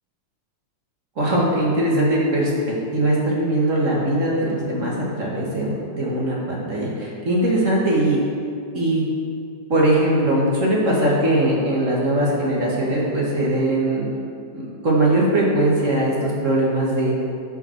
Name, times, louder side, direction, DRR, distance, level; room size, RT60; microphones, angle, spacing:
voice 1, 1.2-8.2 8.7-9.1 9.7-14.1 14.5-17.2, right 1 dB, 45° right, -5 dB, 2.0 m, -20 dB
12.5 x 5.8 x 4.5 m, 2.4 s
omnidirectional pair, 1.9 m